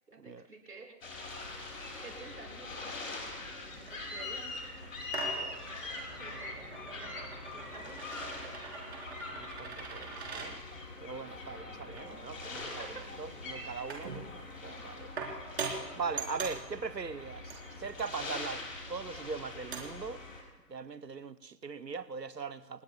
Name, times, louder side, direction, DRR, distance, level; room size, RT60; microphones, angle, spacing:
voice 1, 0.1-0.9 1.7-4.7 5.4-5.6 6.1-7.2 7.5-8.5 11.7-13.0, right 3 dB, 70° right, 7.0 m, -52 dB
sound 1, 1.0-20.4, left 3 dB, 55° left, 4.9 m, -43 dB
sound 2, 3.4-20.1, right 5 dB, 40° right, 4.4 m, -45 dB
voice 2, 9.3-10.6 11.0-15.1 16.0-20.2 20.7-22.8, right 5 dB, 85° right, 1.0 m, -41 dB
30.0 x 20.0 x 2.4 m
figure-of-eight pair, 150°, 49 cm